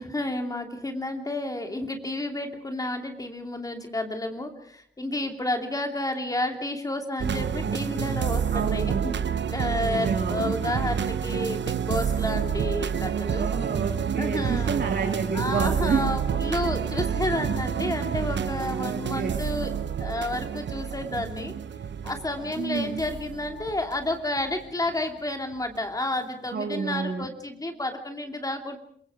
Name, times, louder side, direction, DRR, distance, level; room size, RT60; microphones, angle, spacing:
voice 1, 0.0-9.2 9.5-13.5 14.2-14.8 15.3-19.7 20.0-21.5 22.0-28.8, left 1 dB, 20° left, 5 dB, 2.8 m, -31 dB
sound 1, 7.2-24.9 25.5-25.8, right 7 dB, 75° right, 0.9 m, -29 dB
voice 2, 8.5-9.0 9.8-10.5 13.3-16.0 18.8-19.3 22.6-23.0 26.5-27.3, right 5 dB, 60° right, 2 dB, 2.8 m, -29 dB
28.5 x 22.5 x 4.9 m, 0.63 s
wide cardioid pair, 175°, 18 cm